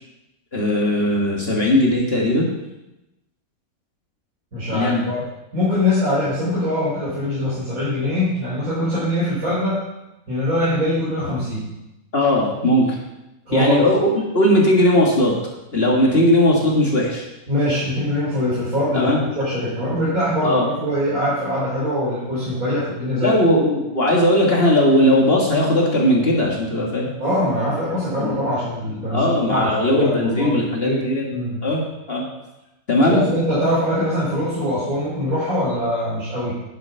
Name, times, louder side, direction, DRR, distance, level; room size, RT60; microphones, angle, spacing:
voice 1, 0.5-2.5 4.7-5.0 12.1-13.0 13.5-15.3 15.7-17.2 18.9-19.2 20.4-20.7 23.2-27.1 28.2-28.4 29.1-31.3 31.6-32.3 32.9-33.2, left 1 dB, 45° left, -2 dB, 2.0 m, -18 dB
voice 2, 4.5-5.2 5.5-9.8 10.3-11.6 13.5-13.8 17.5-23.5 27.2-31.6 33.1-36.5, left 1 dB, 70° right, -11 dB, 4.8 m, -23 dB
10.5 x 7.9 x 5.7 m, 0.96 s
omnidirectional pair, 1.5 m